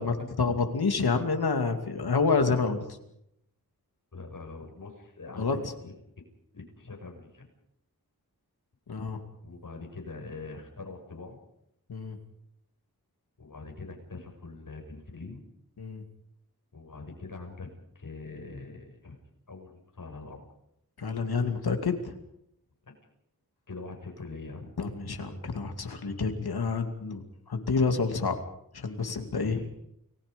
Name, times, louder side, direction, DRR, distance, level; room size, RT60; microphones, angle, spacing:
voice 1, 0.0-2.8 5.4-5.6 8.9-9.2 11.9-12.2 15.8-16.0 21.0-22.1 24.8-27.2 27.5-28.4 28.7-29.6, left 4 dB, 90° left, 6 dB, 2.6 m, -28 dB
voice 2, 4.1-5.9 6.5-7.5 9.4-11.4 13.4-15.4 16.7-17.7 17.9-19.2 19.5-20.5 23.7-24.7 29.2-29.7, left 3 dB, 60° left, 3 dB, 6.7 m, -43 dB
29.5 x 21.0 x 5.4 m, 0.77 s
wide cardioid pair, 70°, 37 cm